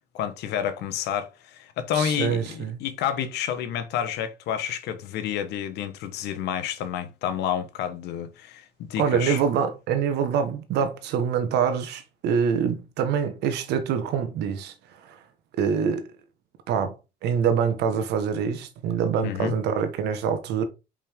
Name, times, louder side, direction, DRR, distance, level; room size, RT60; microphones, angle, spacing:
voice 1, 0.1-9.4 19.2-19.5, left 9 dB, 80° left, 1.1 m, -29 dB
voice 2, 1.9-2.8 9.0-14.7 15.1-15.2 15.6-16.0 16.7-16.9 17.2-20.7, right 7 dB, 80° right, 1.3 m, -25 dB
5.4 x 5.1 x 3.6 m
cardioid pair, 110°, 17 cm